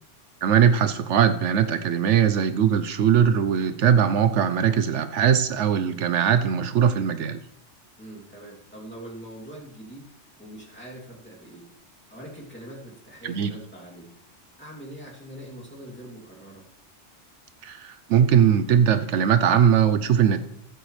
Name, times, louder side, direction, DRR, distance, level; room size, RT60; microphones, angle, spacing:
voice 1, 0.4-7.4 13.2-13.5 17.6-20.4, right 8 dB, 75° right, 10 dB, 0.9 m, -20 dB
voice 2, 8.0-10.1 10.4-11.7 12.1-14.1 14.6-16.7, right 1 dB, 10° left, -4 dB, 2.7 m, -42 dB
15.5 x 8.9 x 3.2 m, 0.74 s
omnidirectional pair, 1.3 m